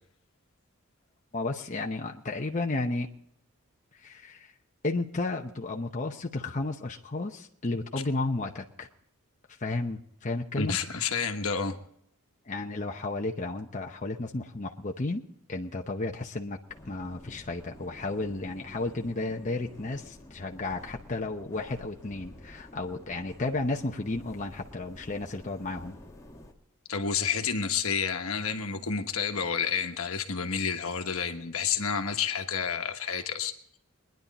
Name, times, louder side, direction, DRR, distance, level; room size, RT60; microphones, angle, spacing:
voice 1, 1.3-3.1 3.9-4.5 4.8-8.9 9.5-10.8 12.4-15.2 15.5-16.6 16.9-26.0, left 2 dB, 35° left, 0.8 m, -33 dB
voice 2, 10.6-11.8 26.9-33.5, left 6 dB, 70° left, 1.3 m, -30 dB
sound 1, 16.7-26.5, left 1 dB, 15° left, 1.4 m, -50 dB
22.5 x 10.5 x 4.1 m
head